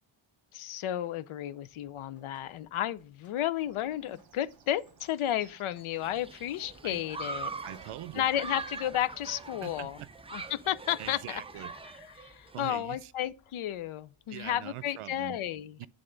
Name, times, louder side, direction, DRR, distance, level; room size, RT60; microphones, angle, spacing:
voice 1, 0.5-7.7 8.1-10.0 10.3-11.4 11.8-15.8, left 11 dB, 80° left, 0.6 m, -33 dB
Drip, 1.6-14.6, left 1 dB, 35° left, 3.1 m, -66 dB
sound 1, 3.6-8.9, right 6 dB, 50° right, 0.9 m, -59 dB
Human group actions, 6.0-12.6, right 3 dB, 15° right, 0.3 m, -42 dB
voice 2, 7.6-8.2 9.6-9.9 11.0-11.7 12.5-13.1 14.3-15.4 15.8-15.9, right 14 dB, 85° right, 0.6 m, -43 dB
8.7 x 3.7 x 3.8 m
wide cardioid pair, 165°, 49 cm